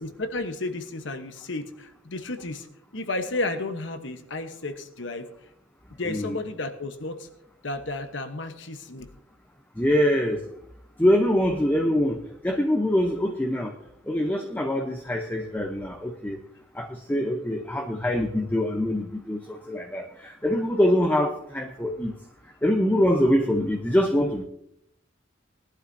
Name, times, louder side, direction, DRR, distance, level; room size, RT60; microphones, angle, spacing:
voice 1, 0.0-2.7 2.9-5.3 6.0-7.3 7.6-9.1, left 2 dB, 70° left, 8 dB, 1.1 m, -32 dB
voice 2, 6.1-6.4 9.8-10.4 11.0-12.2 12.4-13.7 14.1-16.4 16.8-22.1 22.6-24.4, left 1 dB, 10° left, 3 dB, 0.8 m, -24 dB
20.0 x 11.5 x 2.7 m, 0.75 s
head